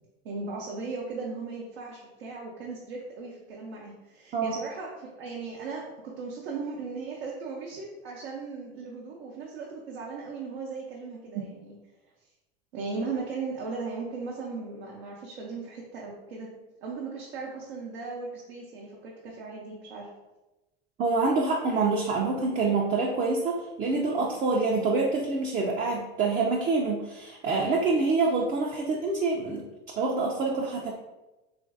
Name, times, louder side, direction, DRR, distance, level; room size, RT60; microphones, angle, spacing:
voice 1, 0.2-11.8 12.7-16.5 16.8-20.1, right 4 dB, 85° right, -3 dB, 0.6 m, -37 dB
voice 2, 21.0-29.7 30.0-30.9, right 3 dB, 30° right, -1 dB, 0.3 m, -26 dB
3.0 x 2.5 x 2.4 m, 1.1 s
hypercardioid pair, 85°, 31 cm